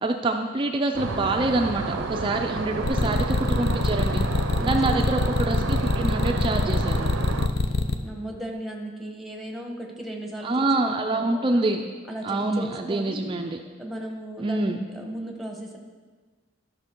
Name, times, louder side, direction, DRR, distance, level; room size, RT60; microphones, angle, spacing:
voice 1, 0.0-4.2 4.6-7.2 10.4-11.8 12.2-13.6 14.4-14.8, right 2 dB, 25° right, 4 dB, 0.4 m, -26 dB
sound 1, 0.9-7.5, right 4 dB, 85° right, 0.6 m, -30 dB
sound 2, 2.8-7.9, left 3 dB, 55° left, 0.6 m, -24 dB
voice 2, 4.6-5.0 8.0-11.6 12.1-13.2 13.8-15.8, right 1 dB, ahead, 1 dB, 1.1 m, -36 dB
12.0 x 6.1 x 4.5 m, 1.4 s
head